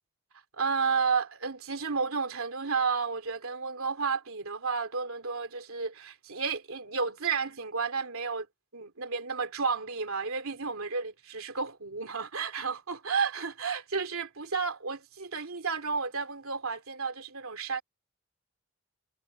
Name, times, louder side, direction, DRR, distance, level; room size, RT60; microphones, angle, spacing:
voice 1, 0.6-8.5 8.7-17.8, right 5 dB, 85° right, 2.6 m, -32 dB
head